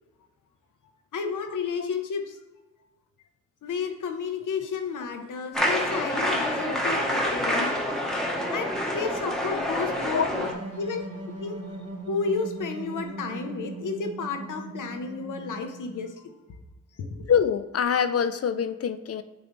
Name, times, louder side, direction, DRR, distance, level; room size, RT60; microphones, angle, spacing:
voice 1, 1.1-2.4 3.6-7.8 8.5-8.6 8.9-10.5 10.8-11.1 11.4-11.6 12.1-16.3 17.0-17.3, left 5 dB, 85° left, 5 dB, 0.8 m, -32 dB
sound 1, 5.5-10.5, equal, ahead, 1.0 m, -27 dB
sound 2, 10.4-16.0, right 3 dB, 50° right, 1.5 m, -39 dB
voice 2, 17.3-19.2, left 7 dB, 50° left, 11 dB, 0.5 m, -25 dB
8.5 x 3.8 x 3.1 m, 1.2 s
wide cardioid pair, 85°, 30 cm